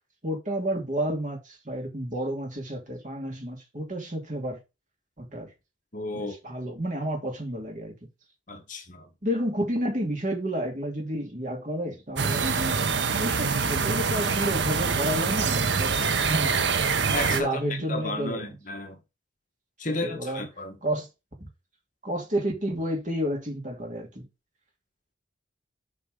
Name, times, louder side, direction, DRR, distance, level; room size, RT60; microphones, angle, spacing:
voice 1, 0.2-4.6 5.2-5.5 6.1-7.9 9.2-12.9 13.2-16.0 16.3-16.5 17.3-18.5 19.9-20.4 20.8-21.1 22.0-24.3, equal, 40° right, 2.5 m, -30 dB
voice 2, 5.9-6.4 8.5-9.1 17.1-19.0 19.8-20.8, left 2 dB, 40° left, 1.4 m, -33 dB
sound 1, 12.2-17.4, right 5 dB, 60° right, 0.8 m, -25 dB
7.5 x 4.2 x 5.0 m
head